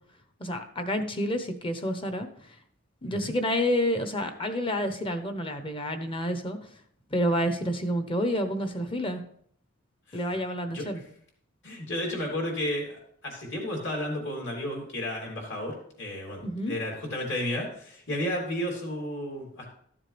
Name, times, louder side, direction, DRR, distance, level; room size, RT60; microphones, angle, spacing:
voice 1, 0.4-2.3 3.0-6.6 7.1-9.2 10.1-11.0 16.4-16.7, equal, 25° left, 7 dB, 0.9 m, -29 dB
voice 2, 11.6-19.7, left 1 dB, 60° left, -1 dB, 3.1 m, -33 dB
13.0 x 7.3 x 3.4 m, 0.64 s
head